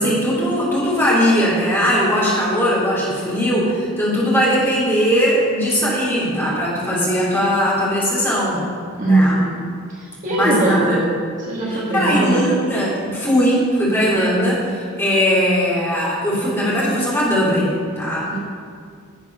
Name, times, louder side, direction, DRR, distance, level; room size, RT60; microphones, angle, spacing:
voice 1, 0.0-8.6 9.0-9.4 10.3-11.0 11.9-18.3, equal, 10° left, -7 dB, 3.3 m, -19 dB
voice 2, 9.0-11.1 11.4-12.5 18.3-18.4, right 2 dB, 35° right, -6 dB, 1.9 m, -20 dB
12.0 x 8.1 x 5.6 m, 2.1 s
head